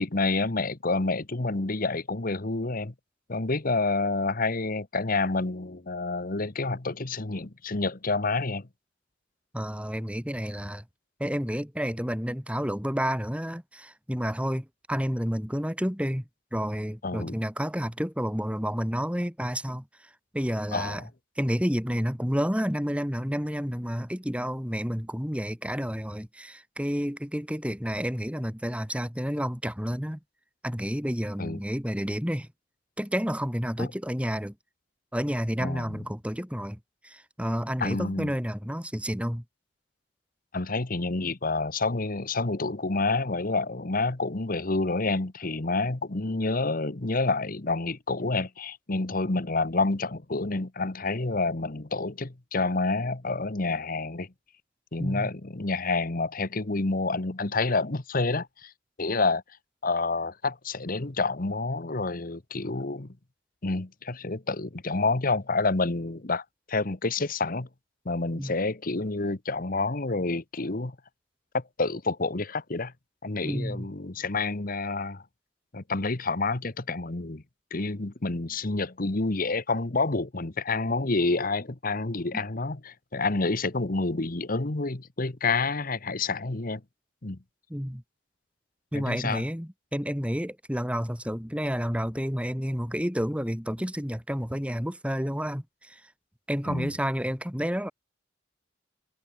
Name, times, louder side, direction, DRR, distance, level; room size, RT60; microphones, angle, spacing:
voice 1, 0.0-2.9 3.3-8.7 17.0-17.3 20.7-21.1 31.4-31.6 33.8-33.9 35.6-36.0 37.8-38.3 40.5-54.3 54.9-58.7 59.0-59.4 59.8-63.1 63.6-67.7 68.0-70.9 71.5-72.9 73.2-75.2 75.7-77.4 77.7-86.8 87.2-87.4 88.9-89.4 96.7-96.9, left 3 dB, 45° left, 1.2 m, -28 dB
voice 2, 9.5-10.8 11.2-16.2 16.5-21.1 21.4-30.2 30.6-32.5 33.0-34.5 35.1-39.4 55.0-55.3 68.3-68.5 73.4-73.9 82.3-82.4 87.7-88.0 88.9-96.1 96.5-97.9, equal, 5° right, 6.2 m, -30 dB
head